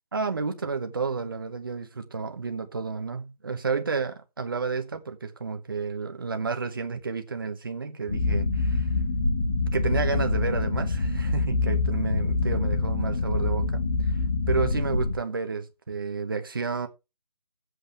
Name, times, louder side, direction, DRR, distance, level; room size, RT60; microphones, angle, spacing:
voice 1, 0.1-8.9 9.7-13.8 14.5-16.9, right 5 dB, 35° right, 1.0 m, -31 dB
sound 1, 8.1-15.2, left 3 dB, 15° left, 1.1 m, -25 dB
13.0 x 8.0 x 3.4 m
hypercardioid pair, 180°, 21 cm